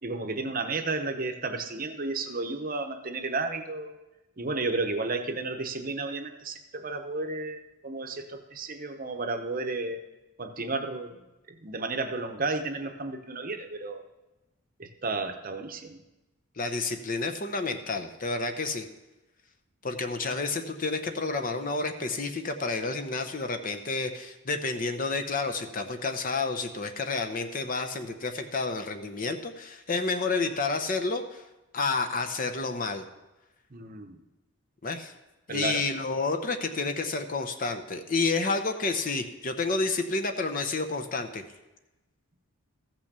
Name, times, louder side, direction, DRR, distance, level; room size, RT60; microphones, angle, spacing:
voice 1, 0.0-3.9 4.4-10.0 10.4-11.2 11.5-14.0 14.8-16.0 33.7-34.2 35.5-35.8, right 3 dB, 40° right, 6 dB, 0.8 m, -32 dB
voice 2, 16.6-18.9 19.8-31.4 31.7-33.1 34.8-35.1 35.5-41.4, left 3 dB, 35° left, 7 dB, 0.8 m, -30 dB
14.5 x 6.0 x 6.7 m, 1.0 s
head